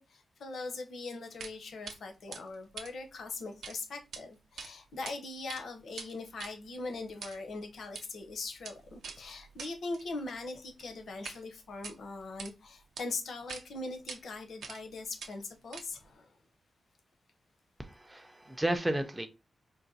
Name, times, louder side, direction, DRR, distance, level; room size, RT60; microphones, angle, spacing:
voice 1, 0.0-16.3, left 3 dB, 65° left, 0.6 m, -41 dB
sound 1, 1.4-1.6 1.9-2.0 2.3-3.8 4.0-4.2 4.6-5.1 5.4-11.4 11.7-12.5 13.0-13.1 13.5-13.6 14.1-14.2 14.6-14.9 15.2-16.1, right 5 dB, 80° right, 0.4 m, -46 dB
voice 2, 17.8-19.3, right 1 dB, 10° right, 0.3 m, -32 dB
3.9 x 2.5 x 2.6 m
wide cardioid pair, 180°, 0 cm